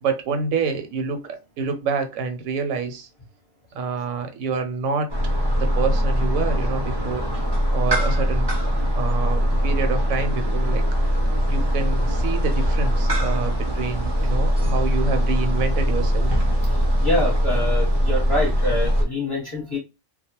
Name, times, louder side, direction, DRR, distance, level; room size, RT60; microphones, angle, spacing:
voice 1, 0.0-3.1 3.7-5.1 5.6-7.2 7.7-8.5 8.9-10.8 11.5-16.3, right 5 dB, 85° right, 1.0 m, -27 dB
sound 1, 5.1-19.0, equal, 40° right, 0.3 m, -21 dB
voice 2, 17.0-19.8, left 1 dB, 25° left, 0.8 m, -25 dB
2.3 x 2.1 x 2.8 m
omnidirectional pair, 1.4 m